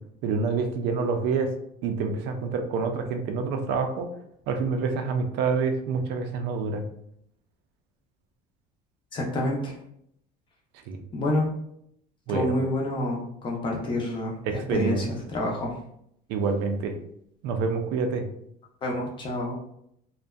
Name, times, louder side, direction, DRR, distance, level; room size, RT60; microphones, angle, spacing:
voice 1, 0.2-1.5 1.8-4.1 4.5-6.8 10.9-11.0 12.3-12.5 14.5-15.0 16.3-17.0 17.4-18.2, right 5 dB, 70° right, 5 dB, 0.4 m, -27 dB
voice 2, 9.1-9.7 11.1-11.5 12.3-15.7 18.8-19.5, left 1 dB, 25° left, -1 dB, 0.5 m, -28 dB
2.6 x 2.1 x 2.2 m, 0.73 s
cardioid pair, 155°, 18 cm